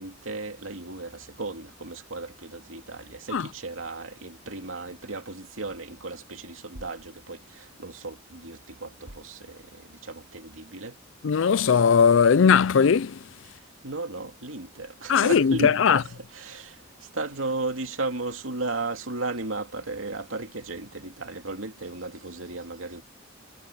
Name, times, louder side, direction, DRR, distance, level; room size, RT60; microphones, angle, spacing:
voice 1, 0.0-11.0 13.8-16.8 17.1-23.0, right 3 dB, 85° right, 2.6 m, -35 dB
voice 2, 11.2-13.2 15.1-16.0, left 6 dB, 70° left, 0.4 m, -19 dB
head